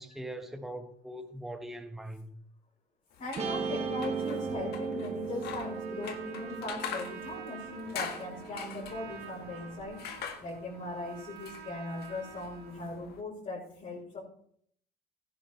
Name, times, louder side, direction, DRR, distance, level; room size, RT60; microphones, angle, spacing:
voice 1, 0.0-2.3, right 1 dB, ahead, 1.2 m, -41 dB
sound 1, 3.1-13.2, left 7 dB, 70° left, 1.6 m, -44 dB
voice 2, 3.2-10.0 10.4-14.2, left 2 dB, 45° left, 6.5 m, -39 dB
Guitar, 3.4-9.8, right 5 dB, 40° right, 1.9 m, -38 dB
Trumpet, 5.4-13.0, right 7 dB, 80° right, 2.1 m, -49 dB
15.5 x 10.5 x 3.3 m
cardioid pair, 110°, 17 cm